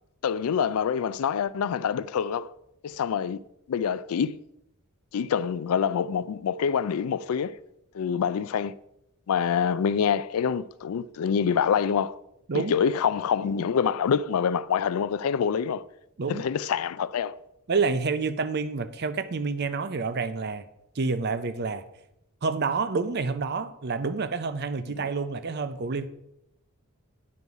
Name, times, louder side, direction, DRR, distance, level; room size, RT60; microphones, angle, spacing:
voice 1, 0.2-2.5 2.8-3.4 3.7-4.3 5.1-7.6 7.9-8.8 9.3-12.2 12.5-15.9 16.3-17.4, left 7 dB, 75° left, 0.4 m, -26 dB
voice 2, 17.7-20.7 21.0-21.8 22.4-26.1, right 4 dB, 45° right, 0.5 m, -28 dB
9.6 x 5.4 x 4.7 m
head